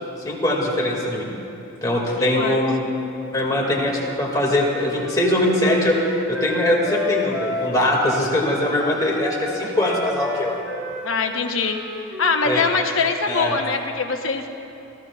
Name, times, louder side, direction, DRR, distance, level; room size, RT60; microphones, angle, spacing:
voice 1, 0.3-1.3 1.8-2.8 3.3-6.0 6.3-10.6 12.4-12.6 13.3-13.5, left 1 dB, 15° left, -3 dB, 2.2 m, -21 dB
voice 2, 2.2-2.7 11.0-11.8 12.2-14.5, left 4 dB, 70° left, 4 dB, 1.0 m, -23 dB
Wind instrument woodwind instrument, 5.0-8.5 8.8-12.6, left 2 dB, 5° right, 1.3 m, -31 dB
29.0 x 14.0 x 2.4 m, 2.8 s
head